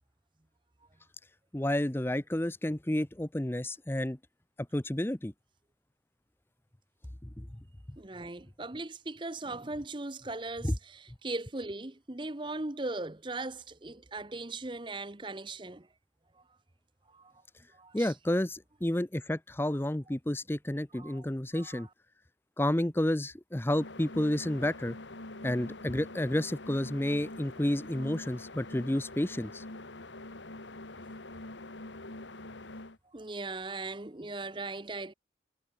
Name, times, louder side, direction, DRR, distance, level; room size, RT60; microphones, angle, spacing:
voice 1, 1.5-4.2 4.7-5.3 7.2-7.5 10.6-10.7 17.9-21.9 22.6-25.0 25.4-29.6, left 1 dB, 10° left, 0.6 m, -30 dB
voice 2, 8.0-15.9 17.1-17.3 17.7-18.1 21.0-21.3 21.5-21.9 33.1-35.1, right 2 dB, 25° right, 0.9 m, -39 dB
sound 1, 23.7-33.0, left 2 dB, 90° left, 2.8 m, -45 dB
head